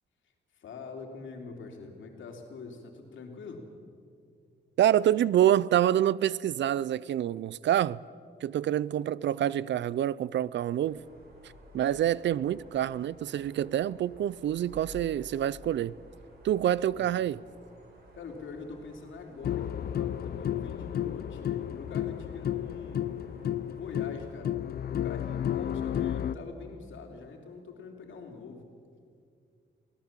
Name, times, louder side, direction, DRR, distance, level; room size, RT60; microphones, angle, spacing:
voice 1, 0.5-3.7 16.9-17.2 18.1-23.1 23.6-24.6 24.9-28.7, left 4 dB, 85° left, 3.2 m, -44 dB
voice 2, 4.8-8.0 8.4-11.0 11.7-15.9 16.4-17.4, right 11 dB, 70° right, 0.4 m, -27 dB
sound 1, 10.8-24.4, right 1 dB, 55° right, 5.0 m, -54 dB
sound 2, 19.4-26.4, left 10 dB, 55° left, 0.5 m, -32 dB
24.0 x 17.5 x 7.4 m
wide cardioid pair, 175°, 19 cm